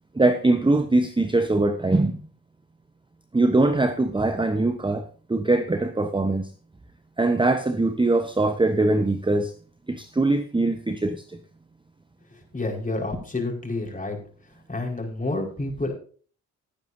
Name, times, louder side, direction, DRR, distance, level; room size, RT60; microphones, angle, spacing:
voice 1, 0.1-2.3 3.3-6.5 7.2-9.5 9.9-11.4, right 2 dB, 15° right, 8 dB, 1.0 m, -22 dB
voice 2, 12.5-14.2 14.7-15.9, left 2 dB, 20° left, 1 dB, 4.7 m, -29 dB
17.0 x 9.3 x 2.7 m, 0.43 s
supercardioid pair, 50°, 38 cm